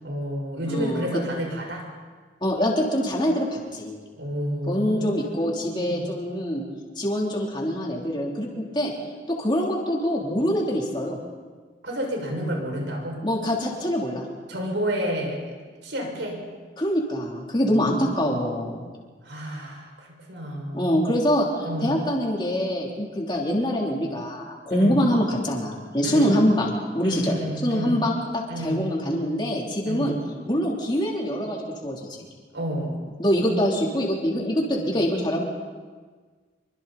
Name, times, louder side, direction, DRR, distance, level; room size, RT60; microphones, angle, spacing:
voice 1, 0.0-1.9 4.1-6.1 11.8-13.2 14.5-15.4 15.8-16.4 17.6-18.3 19.2-21.1 21.6-22.0 24.7-25.0 26.0-26.3 27.0-28.0 28.5-28.9 29.8-30.2 32.5-32.9, equal, 80° right, 0 dB, 6.3 m, -30 dB
voice 2, 0.7-1.1 2.4-4.0 4.7-6.6 7.0-8.9 9.3-11.2 13.2-14.2 16.8-18.9 20.7-21.5 21.8-27.4 27.6-30.1 30.5-32.0 33.2-35.4, equal, 25° left, -2 dB, 3.5 m, -24 dB
26.0 x 24.5 x 4.3 m, 1.5 s
head